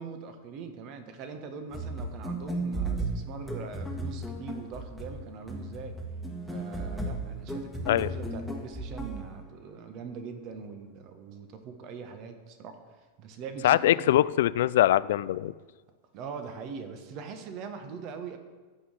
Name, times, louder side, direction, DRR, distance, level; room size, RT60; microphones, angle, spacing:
voice 1, 0.0-5.9 6.5-14.2 16.1-18.4, right 5 dB, 40° right, 7 dB, 1.5 m, -42 dB
sound 1, 1.7-9.3, right 2 dB, ahead, 1.6 m, -35 dB
voice 2, 13.6-15.5, left 13 dB, 55° left, 18 dB, 0.3 m, -23 dB
15.5 x 5.6 x 6.5 m, 1.4 s
figure-of-eight pair, 90°, 0 cm